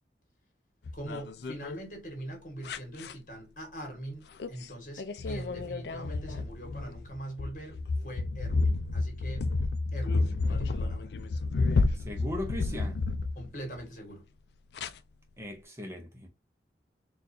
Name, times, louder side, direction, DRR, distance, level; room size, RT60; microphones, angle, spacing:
sound 1, 0.8-1.8 2.6-3.1 4.4-4.7 5.0-13.8 14.8-14.9, left 3 dB, 75° left, 0.4 m, -30 dB
voice 1, 0.9-9.5 9.9-11.1 13.3-14.2, right 1 dB, 45° left, 1.6 m, -42 dB
voice 2, 11.9-13.0 15.4-16.3, left 1 dB, 15° right, 0.7 m, -38 dB
4.3 x 2.5 x 2.6 m
head